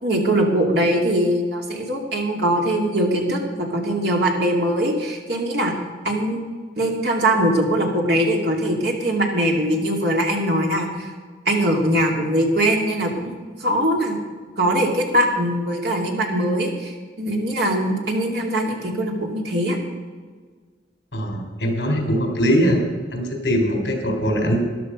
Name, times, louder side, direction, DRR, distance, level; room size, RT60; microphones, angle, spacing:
voice 1, 0.0-5.7 6.0-6.4 6.8-11.1 11.5-13.3 13.6-14.2 14.6-19.8, right 1 dB, 65° right, 0 dB, 2.5 m, -21 dB
voice 2, 21.1-22.8 23.1-24.6, equal, 65° left, 2 dB, 3.7 m, -21 dB
13.5 x 11.5 x 5.1 m, 1.5 s
head